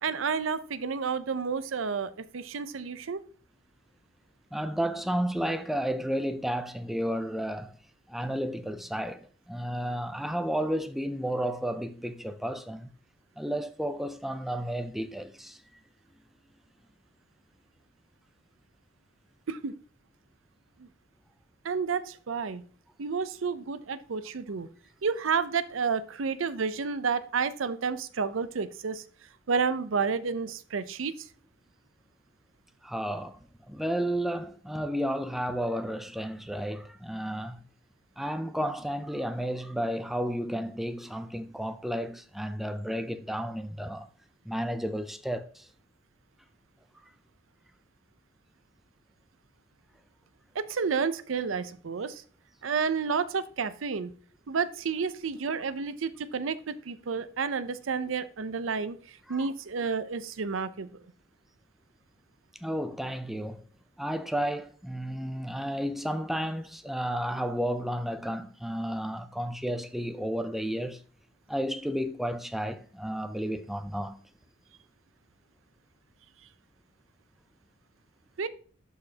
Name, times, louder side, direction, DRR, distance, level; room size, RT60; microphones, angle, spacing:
voice 1, 0.0-3.2 19.5-19.7 20.8-20.9 21.6-22.6 23.0-24.7 25.0-29.0 29.5-31.3 50.5-52.2 52.6-54.1 54.5-61.0 78.4-78.5, right 5 dB, 85° right, 0.6 m, -30 dB
voice 2, 4.5-7.7 8.1-12.9 13.4-15.6 32.8-37.6 38.2-44.1 44.5-45.7 59.3-59.5 62.6-63.6 64.0-71.0 71.5-74.2, equal, ahead, 0.4 m, -32 dB
11.5 x 4.1 x 2.8 m
head